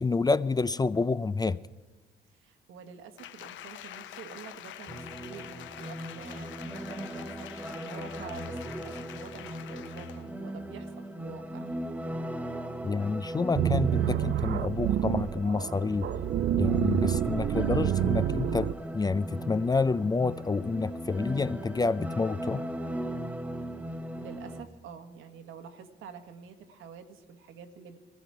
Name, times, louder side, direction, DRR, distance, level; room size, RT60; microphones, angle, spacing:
voice 1, 0.0-1.6 12.8-16.1 16.5-22.6, left 4 dB, 20° left, 0.4 m, -28 dB
voice 2, 2.4-11.7 24.2-28.0, right 6 dB, 85° right, 1.4 m, -47 dB
Applause, 3.2-10.3 10.7-10.8, left 11 dB, 75° left, 0.6 m, -46 dB
sound 1, 4.9-24.6, right 1 dB, 5° right, 0.9 m, -38 dB
sound 2, 13.5-18.7, right 11 dB, 60° right, 0.4 m, -28 dB
18.5 x 14.0 x 4.7 m
cardioid pair, 90°, 20 cm